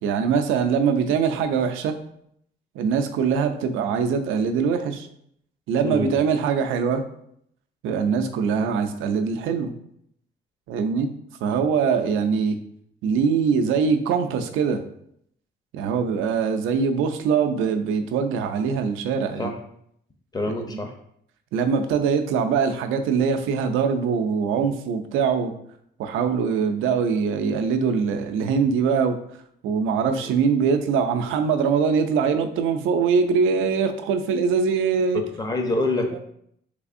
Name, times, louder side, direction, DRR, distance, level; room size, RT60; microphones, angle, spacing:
voice 1, 0.0-2.0 2.8-5.1 5.7-7.0 7.8-9.7 10.7-11.1 11.4-12.6 13.0-14.8 15.7-19.5 20.7-20.9 21.5-25.5 26.0-29.2 29.6-35.2 36.1-36.2, right 6 dB, 90° right, 8 dB, 0.4 m, -22 dB
voice 2, 5.8-6.1 19.4-19.6 20.3-20.9 30.1-30.2 35.1-36.2, left 2 dB, 20° left, 4 dB, 0.6 m, -26 dB
3.4 x 3.3 x 2.5 m, 0.71 s
cardioid pair, 90°, 20 cm